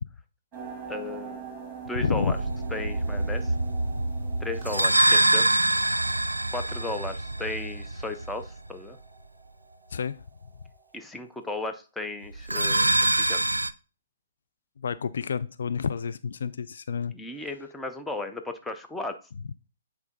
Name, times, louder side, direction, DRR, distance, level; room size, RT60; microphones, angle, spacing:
sound 1, 0.5-11.2, right 6 dB, 15° right, 2.2 m, -45 dB
voice 1, 0.9-1.5 1.9-2.4 2.7-3.5 4.4-5.5 6.5-9.0 10.9-13.4 17.1-19.1, left 2 dB, 5° left, 0.6 m, -35 dB
voice 2, 2.0-2.3 9.9-10.2 12.9-13.0 14.8-17.1, left 6 dB, 55° left, 0.4 m, -29 dB
sound 2, 2.0-8.7 12.3-13.7, right 1 dB, 80° right, 0.4 m, -25 dB
8.2 x 4.5 x 3.8 m
figure-of-eight pair, 130°, 0 cm